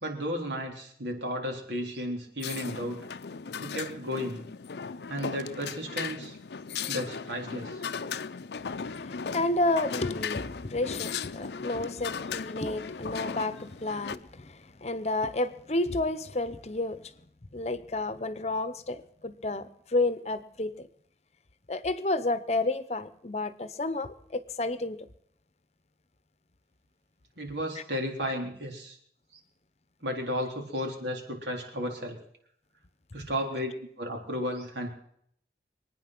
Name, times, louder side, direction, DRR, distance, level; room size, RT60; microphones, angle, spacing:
voice 1, 0.0-3.1 3.6-4.4 5.1-6.4 6.9-7.8 27.4-29.0 30.0-32.2 33.1-33.7 34.0-34.9, equal, 85° right, 3.8 m, -33 dB
sound 1, 2.4-14.2, left 6 dB, 70° left, 0.6 m, -37 dB
voice 2, 8.8-17.1 17.5-20.9 21.7-25.0 27.8-27.9, left 2 dB, 35° left, 0.8 m, -31 dB
24.5 x 9.5 x 6.0 m
head